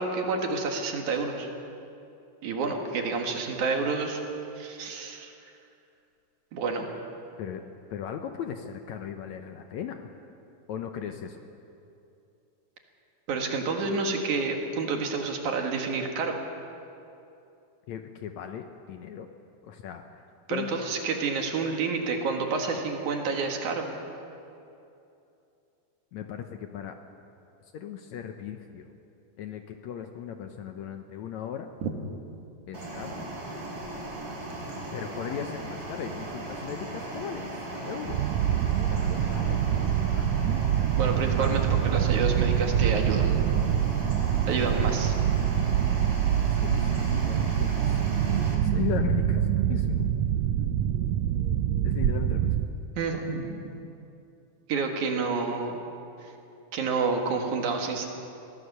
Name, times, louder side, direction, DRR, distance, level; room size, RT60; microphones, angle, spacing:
voice 1, 0.0-1.5 2.4-4.2 4.6-5.3 6.5-6.8 13.3-16.4 20.5-23.8 31.8-31.9 40.9-43.4 44.5-45.1 53.0-53.7 54.7-55.8 56.7-58.1, right 4 dB, 65° right, 3 dB, 3.0 m, -29 dB
voice 2, 7.9-10.1 10.7-11.4 17.9-19.3 19.6-20.8 26.1-26.9 27.7-28.9 29.4-31.7 32.7-33.2 34.9-38.2 38.9-40.4 44.9-45.0 45.9-46.3 46.6-48.0 48.6-50.1 51.8-52.6, left 9 dB, 70° left, 6 dB, 1.9 m, -37 dB
sound 1, 32.7-48.5, right 2 dB, 35° right, 3.8 m, -37 dB
sound 2, 38.1-52.7, right 10 dB, 85° right, 1.5 m, -25 dB
23.5 x 16.5 x 6.8 m, 2.7 s
omnidirectional pair, 3.8 m